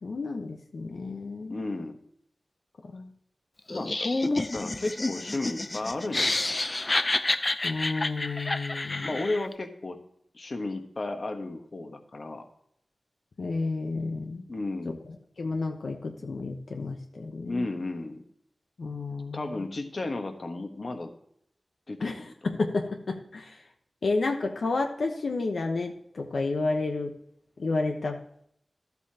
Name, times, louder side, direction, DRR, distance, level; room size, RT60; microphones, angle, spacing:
voice 1, 0.0-1.6 2.9-3.1 7.6-9.2 13.4-14.5 14.8-14.9 15.4-17.6 18.8-19.6 22.0-23.6 24.0-27.1 27.6-28.2, left 3 dB, 75° left, 3 dB, 0.9 m, -31 dB
voice 2, 1.5-2.0 3.7-6.6 9.0-10.0 10.3-12.5 14.5-15.0 17.5-18.2 19.3-21.1 21.9-22.1, left 2 dB, 50° left, 6 dB, 1.2 m, -33 dB
Laughter, 3.7-9.5, left 2 dB, 30° left, 0.5 m, -29 dB
13.0 x 8.2 x 2.9 m, 0.69 s
wide cardioid pair, 90°, 0 cm